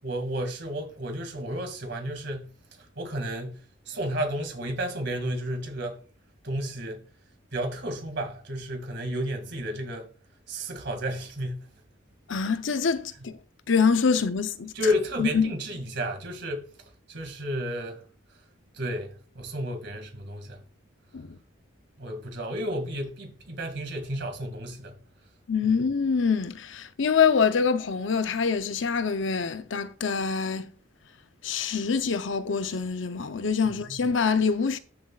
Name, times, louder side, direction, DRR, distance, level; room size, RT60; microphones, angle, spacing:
voice 1, 0.0-2.5 3.0-3.6 3.9-6.0 6.4-7.0 7.5-10.1 10.5-11.6 14.7-16.7 17.1-18.0 18.7-20.6 22.0-25.0 25.6-25.7 33.6-34.0, equal, 60° right, 2.2 m, -32 dB
voice 2, 12.3-13.3 13.7-14.7 15.2-15.5 21.1-21.4 25.5-30.7 31.4-34.8, left 5 dB, 70° left, 0.7 m, -25 dB
12.5 x 7.2 x 2.4 m
head